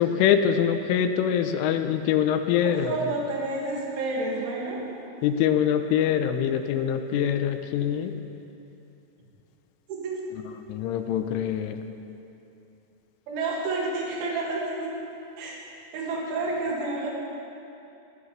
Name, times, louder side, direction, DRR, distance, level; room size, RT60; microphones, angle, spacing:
voice 1, 0.0-3.0 5.2-8.1 10.7-11.8, left 9 dB, 85° left, 8 dB, 3.3 m, -24 dB
voice 2, 2.6-4.8 9.9-10.2 13.3-14.9 15.4-17.1, right 2 dB, 75° right, -4 dB, 4.6 m, -30 dB
24.0 x 15.0 x 3.3 m, 2.8 s
omnidirectional pair, 5.6 m